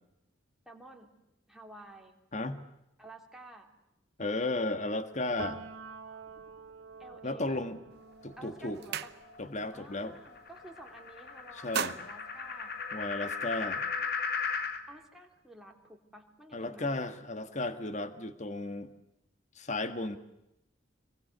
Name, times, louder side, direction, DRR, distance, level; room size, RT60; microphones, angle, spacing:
voice 1, 0.6-1.1 1.5-2.1 3.0-3.7 6.0-6.2 7.0-7.6 8.4-9.1 9.7-12.7 13.2-14.2 14.9-17.1, right 1 dB, ahead, 1 dB, 3.4 m, -52 dB
voice 2, 2.3-2.6 4.2-5.6 7.2-7.8 8.2-8.8 9.4-10.2 11.6-12.0 12.9-13.8 16.5-18.9 19.5-20.2, left 2 dB, 40° left, 10 dB, 1.6 m, -34 dB
Piano, 5.4-13.0 13.3-14.9, right 4 dB, 75° right, 2.4 m, -50 dB
sound 1, 7.9-8.1 8.5-9.6 10.0-10.2 10.5-11.1 11.4-13.3, right 7 dB, 60° right, 0.9 m, -39 dB
sound 2, 8.1-14.8, left 5 dB, 55° left, 2.3 m, -38 dB
25.5 x 23.5 x 8.0 m, 0.87 s
head